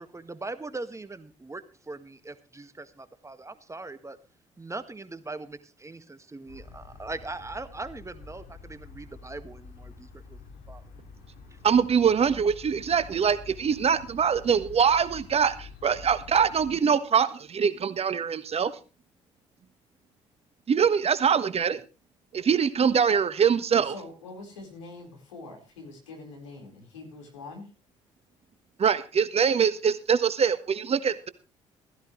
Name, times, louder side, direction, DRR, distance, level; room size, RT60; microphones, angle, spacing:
voice 1, 0.0-4.2 4.6-10.4 10.7-10.8, right 2 dB, 20° right, 11 dB, 1.7 m, -40 dB
sound 1, 6.5-16.8, left 4 dB, 65° left, 2.6 m, -47 dB
voice 2, 11.6-18.7 20.7-21.8 22.3-23.9 28.8-31.3, right 7 dB, 40° right, 13 dB, 1.4 m, -23 dB
voice 3, 23.8-27.7, left 3 dB, 80° left, 1 dB, 4.5 m, -44 dB
15.5 x 15.5 x 3.2 m, 0.33 s
figure-of-eight pair, 45°, 16 cm